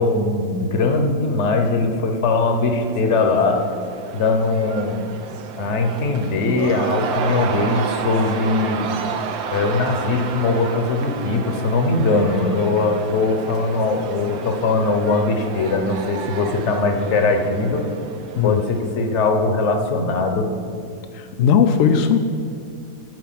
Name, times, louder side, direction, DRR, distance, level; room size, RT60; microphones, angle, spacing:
voice 1, 0.0-3.6 4.1-5.0 5.6-9.0 9.5-17.8 18.4-20.5, left 3 dB, 50° left, 5 dB, 1.0 m, -20 dB
Cheering / Crowd, 2.3-19.2, right 6 dB, 85° right, 1.5 m, -31 dB
voice 2, 21.4-22.2, left 7 dB, 85° left, 6 dB, 0.7 m, -16 dB
11.0 x 4.7 x 7.5 m, 2.4 s
omnidirectional pair, 2.0 m